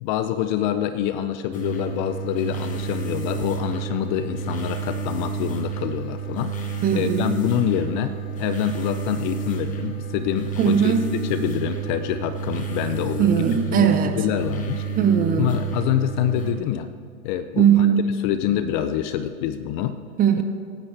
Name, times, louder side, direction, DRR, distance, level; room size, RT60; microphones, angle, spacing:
voice 1, 0.0-6.6 6.9-10.9 11.3-13.3 13.7-14.8 15.4-16.9 17.2-17.9 18.2-20.0, left 11 dB, 35° left, 11 dB, 0.5 m, -26 dB
sound 1, 1.5-16.5, right 5 dB, 20° left, 1.4 m, -30 dB
voice 2, 6.8-7.4 10.6-11.1 13.2-14.2 15.0-15.5 17.6-18.1 20.2-20.4, right 8 dB, 20° right, 8 dB, 0.8 m, -19 dB
26.0 x 10.0 x 3.4 m, 2.1 s
hypercardioid pair, 130°, 43 cm